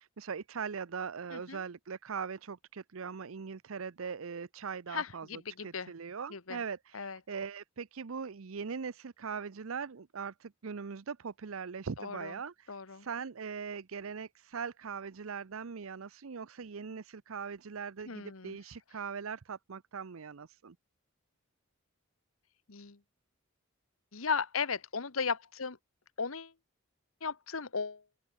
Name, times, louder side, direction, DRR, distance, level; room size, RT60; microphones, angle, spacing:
voice 1, 0.0-20.8, right 6 dB, 80° right, 0.7 m, -41 dB
voice 2, 1.3-1.6 4.9-5.9 6.3-6.6 6.9-7.2 12.0-12.3 12.7-13.0 18.1-18.6 22.7-23.0 24.1-25.8 26.2-26.5 27.2-28.0, left 5 dB, 90° left, 1.4 m, -36 dB
open air
head